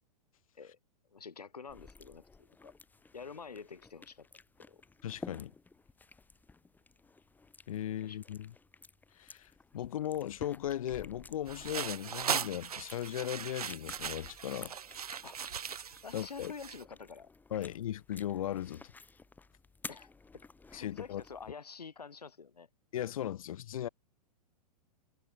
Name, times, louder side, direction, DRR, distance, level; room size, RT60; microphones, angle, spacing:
voice 1, 1.1-2.7 3.1-4.3 4.7-4.8 8.0-8.2 15.2-15.4 16.0-17.3 17.6-17.7 19.9-22.7, left 5 dB, 75° left, 3.9 m, -48 dB
sound 1, 1.7-21.5, left 3 dB, 10° left, 3.0 m, -54 dB
voice 2, 5.0-5.5 7.7-8.5 9.2-14.7 16.1-16.5 17.5-18.9 20.7-21.2 22.9-23.9, left 11 dB, 60° left, 2.0 m, -37 dB
sound 2, 11.5-16.8, right 7 dB, 70° right, 3.1 m, -39 dB
figure-of-eight pair, 105°, 20 cm